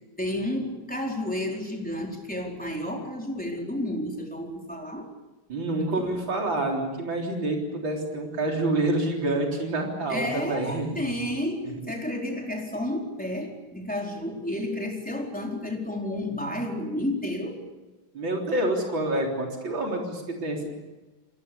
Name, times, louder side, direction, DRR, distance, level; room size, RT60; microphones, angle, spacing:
voice 1, 0.2-5.1 5.8-6.2 10.1-17.6, left 1 dB, 5° left, 0 dB, 4.3 m, -31 dB
voice 2, 5.5-11.0 18.1-20.8, right 2 dB, 70° right, 0 dB, 4.5 m, -27 dB
28.0 x 20.5 x 7.0 m, 1.1 s
omnidirectional pair, 2.2 m